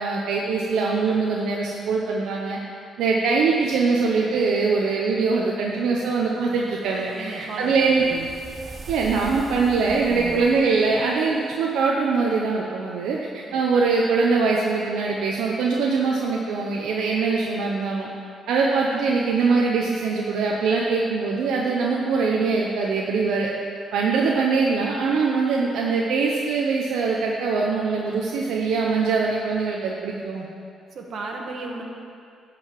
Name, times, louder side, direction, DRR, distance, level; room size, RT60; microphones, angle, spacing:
voice 1, 0.0-2.6 3.0-8.0 8.9-18.1 18.5-23.5 23.9-30.5, right 4 dB, 85° right, -2 dB, 1.0 m, -22 dB
sound 1, 6.4-11.7, right 3 dB, 35° right, 1.1 m, -42 dB
voice 2, 7.1-7.7 8.0-8.3 10.1-10.4 13.4-13.6 30.9-31.8, right 3 dB, 60° right, 0 dB, 1.7 m, -35 dB
11.5 x 5.3 x 7.6 m, 2.4 s
cardioid pair, 90°, 0 cm